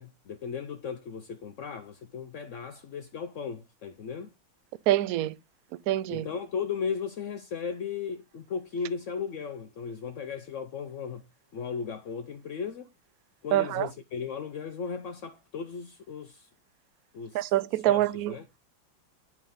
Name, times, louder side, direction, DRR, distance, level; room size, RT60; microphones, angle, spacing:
voice 1, 0.0-4.3 6.1-11.2 11.5-12.9 13.4-16.5 17.1-17.5 17.8-18.5, left 6 dB, 85° left, 0.6 m, -36 dB
voice 2, 4.9-5.3 5.9-6.3 13.5-13.9 17.3-18.3, right 14 dB, 85° right, 0.7 m, -25 dB
7.7 x 5.4 x 3.7 m
omnidirectional pair, 2.1 m